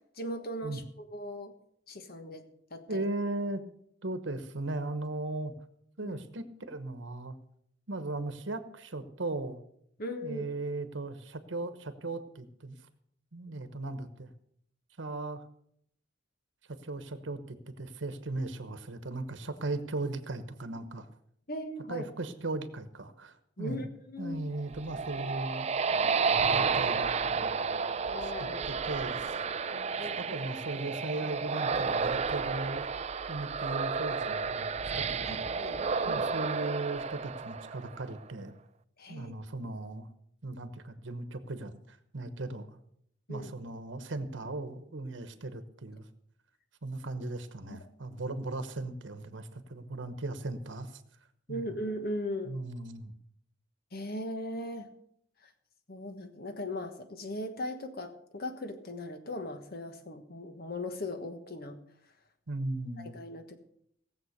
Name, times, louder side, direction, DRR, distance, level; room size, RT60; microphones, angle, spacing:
voice 1, 0.1-1.5 1.9-3.0 6.0-6.2 10.0-10.5 21.5-22.1 23.6-24.4 28.1-28.6 29.7-30.4 35.2-36.3 39.0-39.3 43.3-43.5 47.7-47.8 51.5-52.5 53.9-54.9 55.4-55.5 55.9-61.8 63.0-63.6, left 1 dB, 55° left, 7 dB, 1.3 m, -39 dB
voice 2, 2.9-3.6 4.0-5.5 6.0-7.3 7.9-9.6 10.2-12.8 13.3-14.3 15.0-15.4 16.7-21.1 21.9-23.9 24.2-25.7 26.4-27.4 28.2-29.4 30.2-32.9 33.3-35.6 36.1-38.5 39.1-40.1 40.4-42.8 43.3-46.1 46.8-51.0 51.5-51.8 52.4-53.1 62.5-63.1, right 2 dB, 75° right, 10 dB, 1.1 m, -37 dB
sound 1, 24.5-38.1, right 5 dB, 35° right, 0.5 m, -31 dB
17.5 x 7.6 x 6.5 m, 0.70 s
head